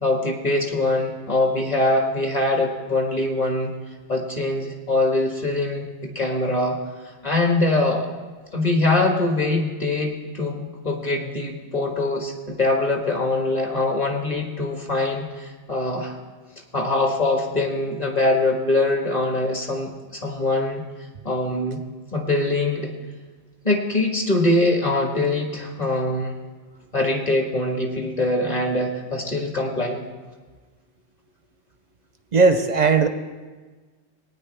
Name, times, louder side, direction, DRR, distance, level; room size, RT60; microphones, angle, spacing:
voice 1, 0.0-3.7 4.1-6.8 7.2-8.1 8.5-16.2 16.7-20.8 21.2-21.8 22.1-22.9 23.6-26.4 26.9-30.1, left 2 dB, 35° left, 2 dB, 1.6 m, -23 dB
voice 2, 32.3-33.1, right 4 dB, 50° right, 9 dB, 0.6 m, -17 dB
18.0 x 9.5 x 3.3 m, 1.4 s
omnidirectional pair, 1.2 m